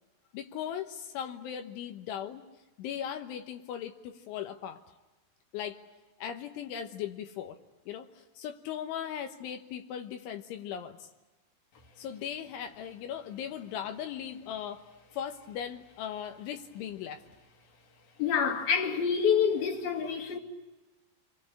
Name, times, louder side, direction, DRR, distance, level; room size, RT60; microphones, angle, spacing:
voice 1, 0.3-2.4 2.8-4.8 5.5-5.8 6.2-7.6 7.9-8.1 8.4-11.0 12.0-14.8 15.1-17.2, left 9 dB, 75° left, 3.4 m, -38 dB
voice 2, 18.2-20.4, left 7 dB, 55° left, 3.6 m, -27 dB
28.5 x 23.0 x 8.5 m
omnidirectional pair, 5.8 m